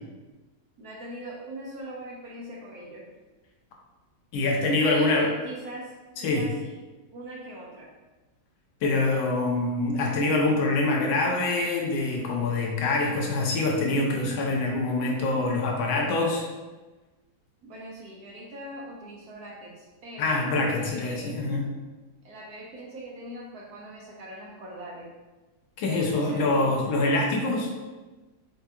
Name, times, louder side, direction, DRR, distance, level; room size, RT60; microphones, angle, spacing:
voice 1, 0.8-3.1 4.8-5.9 6.2-6.8 7.1-7.9 8.8-9.4 17.6-20.3 20.8-21.4 22.2-25.1 25.9-26.9, right 1 dB, 65° right, -3 dB, 1.1 m, -41 dB
voice 2, 4.3-5.3 6.2-6.5 8.8-16.5 20.2-21.7 25.8-27.7, left 2 dB, 85° left, 0 dB, 1.6 m, -25 dB
4.8 x 3.4 x 2.8 m, 1.2 s
omnidirectional pair, 2.2 m